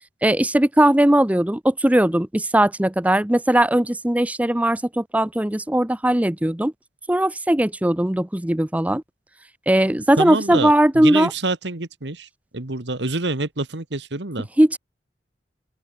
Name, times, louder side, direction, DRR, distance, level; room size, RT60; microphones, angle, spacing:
voice 1, 0.2-6.7 7.1-9.0 9.7-11.3 14.6-14.8, right 1 dB, 10° right, 0.6 m, -19 dB
voice 2, 10.2-12.3 12.5-14.5, right 2 dB, 90° right, 2.0 m, -27 dB
open air
head